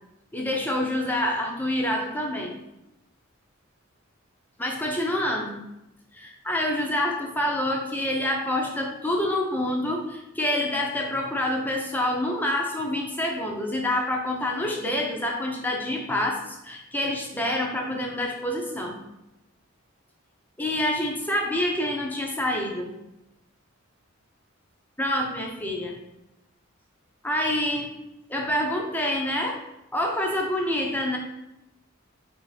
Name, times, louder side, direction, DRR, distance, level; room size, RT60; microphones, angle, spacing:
voice 1, 0.3-2.5 4.6-5.6 6.1-19.0 20.6-22.9 25.0-25.9 27.2-28.0 28.3-29.6 29.9-31.2, left 1 dB, 10° left, 0 dB, 0.5 m, -27 dB
4.0 x 2.7 x 4.8 m, 0.90 s
head